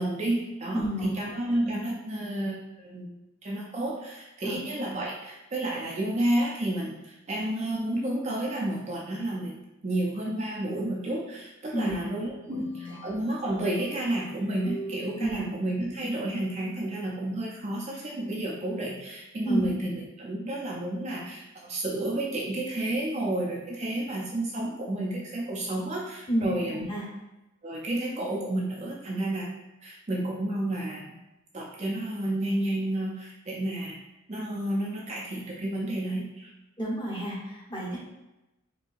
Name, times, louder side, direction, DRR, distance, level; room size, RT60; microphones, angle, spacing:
voice 1, 0.0-3.2 3.4-9.5 9.8-26.8 27.6-29.5 29.8-31.0 31.5-34.0 34.3-36.5, right 1 dB, 30° right, -3 dB, 0.4 m, -31 dB
voice 2, 0.7-1.1 1.5-1.6 4.4-4.5 11.7-12.0 12.5-12.6 12.9-13.0 15.2-15.4 19.4-19.7 26.3-26.4 26.7-27.1 36.8-38.0, right 1 dB, 20° left, -6 dB, 1.0 m, -30 dB
sound 1, 12.3-15.3, right 2 dB, 50° left, 0.4 m, -43 dB
4.4 x 2.7 x 2.5 m, 0.98 s
head